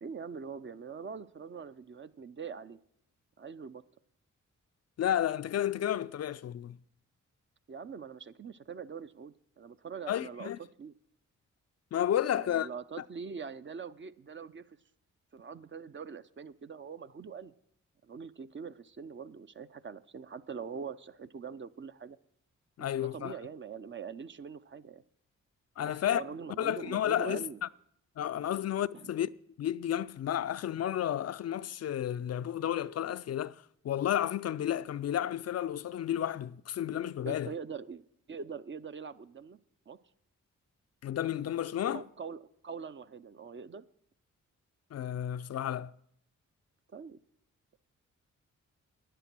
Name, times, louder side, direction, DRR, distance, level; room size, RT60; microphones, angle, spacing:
voice 1, 0.0-2.8 3.4-3.8 7.7-10.9 12.3-14.8 15.3-17.5 18.0-22.2 22.8-25.0 25.8-27.6 28.9-29.1 37.2-38.0 38.3-39.6 39.9-40.0 41.9-43.8 46.9-47.2, right 6 dB, 40° right, 0.6 m, -43 dB
voice 2, 5.0-6.8 10.1-10.6 11.9-12.7 22.8-23.3 25.8-26.2 26.6-27.7 28.2-29.3 29.6-37.5 41.0-42.0 44.9-45.9, left 11 dB, 55° left, 0.4 m, -32 dB
10.0 x 10.0 x 6.0 m
cardioid pair, 55°, 31 cm